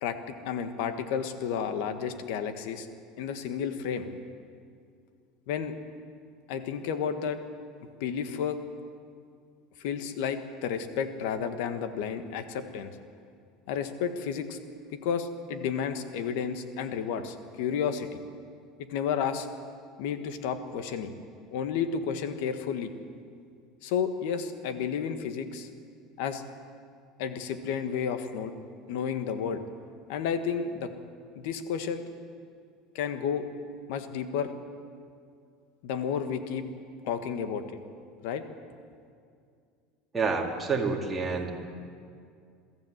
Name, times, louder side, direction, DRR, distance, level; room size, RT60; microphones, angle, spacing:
voice 1, 0.0-2.9 3.2-4.1 5.5-5.7 6.5-7.4 8.0-8.6 9.8-12.9 13.7-14.6 14.9-18.1 18.9-19.5 20.0-21.1 21.5-22.9 23.8-25.7 26.2-26.4 27.2-28.5 28.9-29.6 30.1-30.9 31.4-32.0 33.0-33.4 33.9-34.5 35.8-36.6 37.1-37.6 38.2-38.4, left 7 dB, 70° left, 8 dB, 1.6 m, -31 dB
voice 2, 40.1-41.5, right 4 dB, 15° right, -1 dB, 2.4 m, -28 dB
23.0 x 14.0 x 8.0 m, 2.3 s
supercardioid pair, 145°, 0 cm